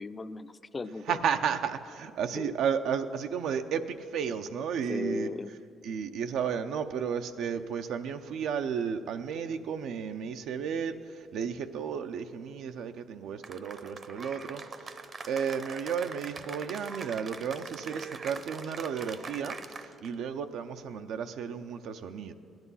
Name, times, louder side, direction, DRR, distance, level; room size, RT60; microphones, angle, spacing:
voice 1, 0.0-1.2 2.4-2.5 4.9-5.5, left 3 dB, 30° left, 12 dB, 0.5 m, -36 dB
voice 2, 1.1-5.3 5.8-22.3, right 7 dB, 75° right, 8 dB, 0.6 m, -33 dB
Cheering / Applause, 13.4-20.1, right 4 dB, 45° right, 0.8 m, -43 dB
17.0 x 10.5 x 5.5 m, 2.5 s
cardioid pair, 80°, 0 cm